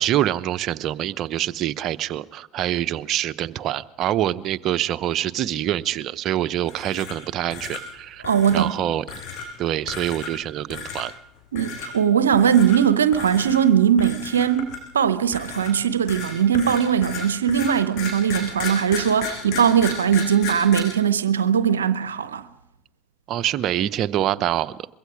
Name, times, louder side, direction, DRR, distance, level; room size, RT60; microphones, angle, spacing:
voice 1, 0.0-8.2 8.5-9.0 9.6-11.1 23.3-24.9, right 12 dB, 50° right, 0.8 m, -25 dB
sound 1, 6.6-7.2 7.5-7.8 8.2-8.7 9.1-9.5 9.9-10.4 10.7-11.0 11.6-11.9 12.3-12.8 13.1-13.6 14.0-14.9 15.3-20.8, left 5 dB, 60° left, 6.9 m, -33 dB
voice 2, 8.2-8.8 11.5-22.5, right 8 dB, 90° right, 0.8 m, -20 dB
24.5 x 23.0 x 5.0 m
hypercardioid pair, 75°, 0 cm